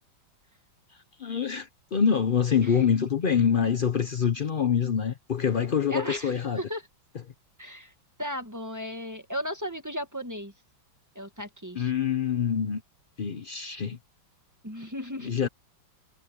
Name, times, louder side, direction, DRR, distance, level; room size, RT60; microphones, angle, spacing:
voice 1, 1.2-6.6 11.7-12.8 13.2-14.0 15.2-15.5, left 7 dB, 85° left, 0.4 m, -25 dB
voice 2, 5.9-6.8 7.6-7.9 8.2-10.5 11.1-11.9 14.6-15.3, equal, 10° right, 1.7 m, -35 dB
omnidirectional pair, 2.1 m